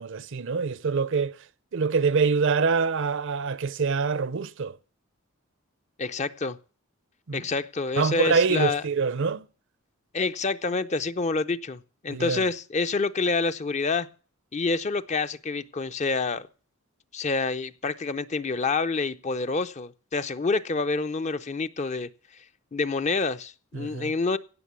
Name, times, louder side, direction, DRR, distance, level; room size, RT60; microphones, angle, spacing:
voice 1, 0.0-1.4 1.7-4.8 7.3-7.4 8.0-9.4 12.1-12.4 23.7-24.1, right 5 dB, 60° right, 0.6 m, -25 dB
voice 2, 6.0-6.6 7.3-8.8 10.1-14.1 14.5-16.5 17.1-22.1 22.7-24.4, left 4 dB, 35° left, 0.6 m, -27 dB
17.0 x 6.6 x 8.2 m
head